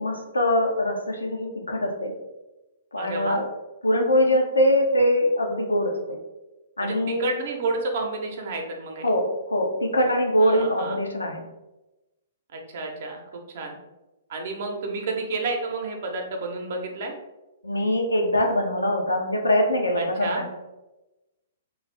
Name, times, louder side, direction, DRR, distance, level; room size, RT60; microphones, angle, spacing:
voice 1, 0.0-2.1 2.9-3.5 3.8-6.2 6.8-7.2 9.0-11.4 17.6-20.5, equal, 90° left, 1 dB, 0.5 m, -23 dB
voice 2, 3.0-3.4 6.8-9.1 10.4-11.0 12.5-13.8 14.3-17.1 20.0-20.4, right 3 dB, 55° right, 3 dB, 0.6 m, -30 dB
2.5 x 2.3 x 3.3 m, 1.0 s
figure-of-eight pair, 120°, 0 cm